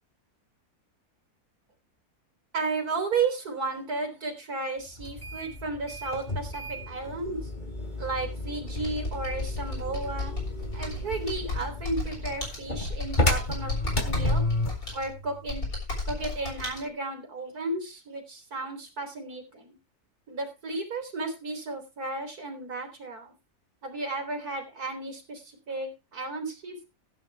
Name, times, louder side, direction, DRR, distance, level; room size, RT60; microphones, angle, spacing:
voice 1, 2.5-7.4 8.0-10.4 10.7-14.4 14.9-15.6 16.1-19.7 20.3-23.3 23.8-26.8, right 3 dB, 85° right, 5 dB, 4.1 m, -33 dB
sound 1, 5.0-14.9, left 2 dB, 30° left, 2.9 m, -32 dB
Computer keyboard, 8.7-16.8, left 2 dB, 75° left, 7.0 m, -34 dB
16.5 x 9.2 x 3.3 m, 0.28 s
omnidirectional pair, 1.6 m